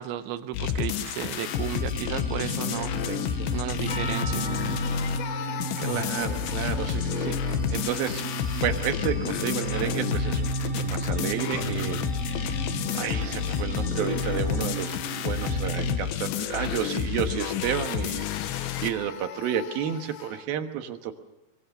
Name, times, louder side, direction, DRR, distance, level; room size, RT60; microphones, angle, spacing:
voice 1, 0.0-2.9 3.5-4.5, right 12 dB, 85° right, 10 dB, 3.3 m, -33 dB
sound 1, 0.5-20.4, left 10 dB, 90° left, 3.4 m, -30 dB
sound 2, 1.4-16.0, right 3 dB, 25° left, 6.4 m, -33 dB
voice 2, 3.1-3.6 5.4-12.6 12.9-21.1, right 9 dB, 65° right, 6 dB, 2.8 m, -32 dB
Percussion, 3.9-8.4, left 2 dB, 40° left, 3.4 m, -42 dB
24.0 x 22.0 x 6.7 m, 0.87 s
omnidirectional pair, 5.2 m